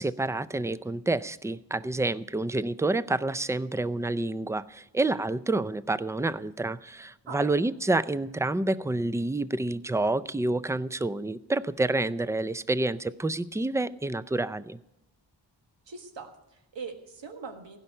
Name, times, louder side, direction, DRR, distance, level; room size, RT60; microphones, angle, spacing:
voice 1, 0.0-14.8, right 2 dB, 5° right, 0.4 m, -28 dB
voice 2, 15.9-17.8, right 4 dB, 85° right, 1.6 m, -41 dB
16.0 x 5.6 x 9.9 m
wide cardioid pair, 70°, 43 cm